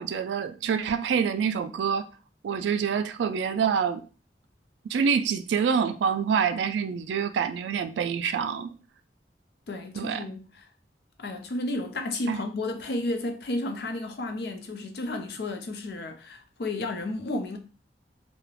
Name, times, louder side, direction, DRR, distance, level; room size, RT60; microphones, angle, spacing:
voice 1, 0.0-2.1 2.4-4.0 4.9-8.8 9.9-10.3 12.3-12.4, right 6 dB, 85° right, 0.3 m, -26 dB
voice 2, 9.7-10.7 11.2-17.6, left 2 dB, 65° left, 0.4 m, -32 dB
2.4 x 2.0 x 3.1 m
head